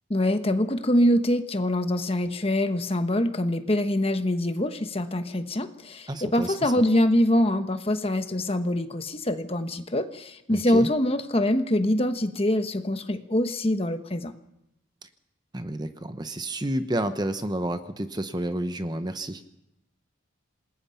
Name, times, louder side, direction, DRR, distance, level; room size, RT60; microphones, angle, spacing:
voice 1, 0.1-14.3, left 1 dB, 30° left, 8 dB, 1.1 m, -24 dB
voice 2, 6.1-6.5 10.5-10.9 15.5-19.4, right 1 dB, 20° right, 9 dB, 0.9 m, -30 dB
27.0 x 20.5 x 5.8 m, 0.85 s
head